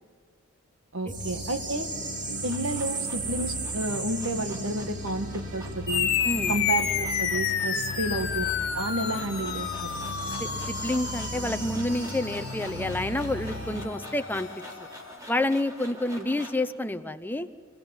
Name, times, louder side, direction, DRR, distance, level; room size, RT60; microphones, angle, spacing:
voice 1, 0.9-1.9 2.4-6.1 6.5-8.5 8.7-10.0 16.2-16.3, right 2 dB, 70° right, 8 dB, 1.6 m, -31 dB
sound 1, 1.1-13.9, right 1 dB, 35° right, 2.6 m, -36 dB
sound 2, 2.1-16.7, equal, 15° right, 3.5 m, -47 dB
sound 3, 5.9-14.8, left 8 dB, 50° left, 1.8 m, -31 dB
voice 2, 6.2-6.6 7.7-7.8 10.4-14.5 15.3-17.5, left 1 dB, 10° left, 9 dB, 0.7 m, -29 dB
29.0 x 16.5 x 8.9 m, 2.1 s
head